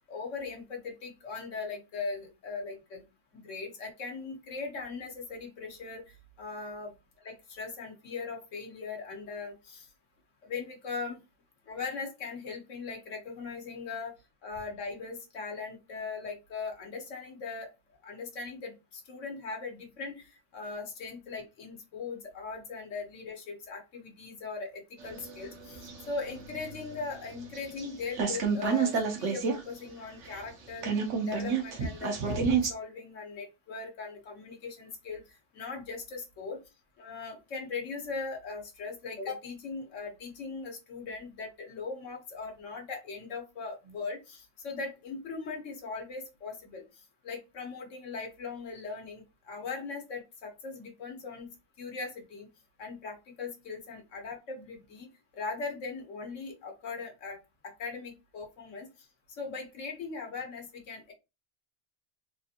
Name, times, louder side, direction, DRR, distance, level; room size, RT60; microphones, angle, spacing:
voice 1, 0.1-3.0 3.3-6.0 6.4-6.9 7.2-9.9 10.4-11.2 11.7-14.1 14.4-17.7 18.0-30.9 31.2-35.2 35.5-36.6 37.0-46.8 47.2-51.5 51.8-52.5 52.8-55.1 55.3-57.4 57.6-58.9 59.4-61.1, left 4 dB, 90° left, 2 dB, 1.3 m, -39 dB
sound 1, 25.0-27.9 28.1-29.6 29.9-30.0 30.2-32.7, right 5 dB, 80° right, 1.1 m, -30 dB
3.6 x 2.5 x 2.7 m, 0.26 s
omnidirectional pair, 1.2 m